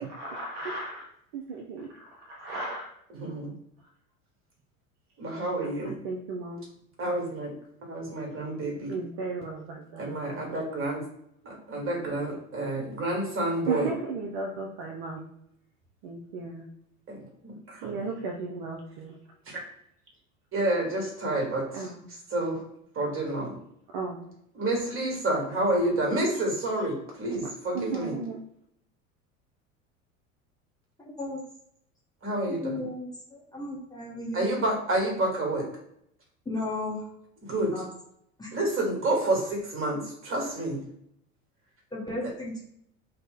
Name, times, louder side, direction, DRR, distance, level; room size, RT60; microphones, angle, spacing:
voice 1, 0.0-2.9 3.2-3.4 5.6-6.7 8.9-10.6 13.7-15.3 16.0-16.7 17.8-19.2 21.7-22.1 23.9-24.3 27.3-27.4 27.7-28.4, right 3 dB, 45° right, 0 dB, 0.6 m, -36 dB
voice 2, 3.1-3.5 5.2-5.9 7.0-7.5 7.8-8.9 10.0-11.0 11.4-13.9 17.1-17.2 17.4-18.0 19.5-19.6 20.5-21.9 22.3-22.6 22.9-23.6 24.5-28.1 32.2-32.8 34.3-35.7 37.4-37.7 38.5-40.8, right 1 dB, 30° right, -1 dB, 1.4 m, -29 dB
voice 3, 32.6-34.5 36.5-37.1 37.6-37.8 38.4-38.5 41.9-42.6, left 2 dB, 10° left, -5 dB, 0.8 m, -34 dB
2.6 x 2.1 x 3.5 m, 0.73 s
figure-of-eight pair, 70°, 41 cm